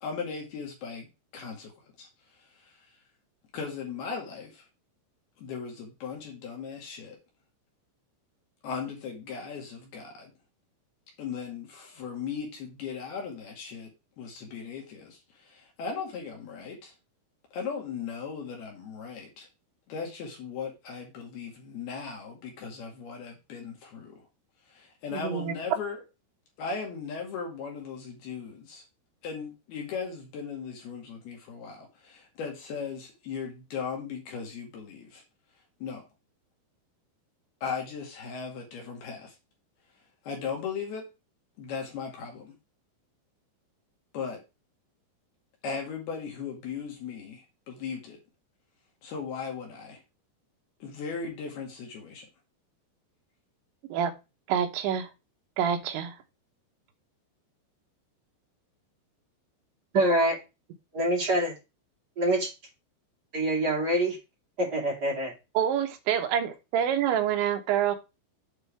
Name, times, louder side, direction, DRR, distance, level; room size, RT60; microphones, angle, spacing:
voice 1, 0.0-1.1 1.3-1.7 2.0-2.1 2.6-2.7 3.5-4.6 5.4-7.2 8.6-10.3 11.2-13.9 14.2-15.2 15.4-16.9 17.5-19.5 19.9-24.2 24.7-26.0 26.6-28.8 29.2-35.2 35.8-36.0 37.6-39.3 40.3-41.0 41.6-42.5 44.1-44.4 45.6-48.2 49.0-50.0 50.8-52.3, left 6 dB, 60° left, 3.5 m, -37 dB
voice 2, 25.1-25.6 53.9-54.1 54.5-55.1 55.6-56.2 65.6-68.0, right 9 dB, 80° right, 3.3 m, -27 dB
voice 3, 59.9-60.4 60.9-61.5 62.2-62.5 63.3-64.2 64.6-65.3, right 1 dB, 30° right, 2.1 m, -25 dB
8.8 x 6.1 x 3.5 m
omnidirectional pair, 5.4 m